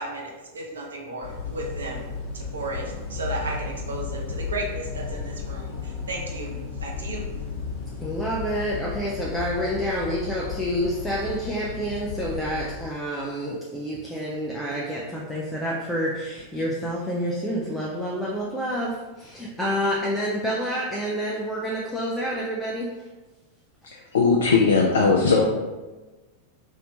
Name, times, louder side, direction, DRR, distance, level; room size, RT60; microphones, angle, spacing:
voice 1, 0.0-2.1 2.3-7.3, right 2 dB, 70° right, -1 dB, 0.6 m, -34 dB
sound 1, 1.2-12.9, left 5 dB, 45° left, 0.9 m, -34 dB
voice 2, 8.0-23.1, equal, 5° left, -5 dB, 0.5 m, -28 dB
voice 3, 23.9-25.4, left 4 dB, 65° left, 0 dB, 0.3 m, -19 dB
3.2 x 2.7 x 2.8 m, 1.2 s
figure-of-eight pair, 90°, 0 cm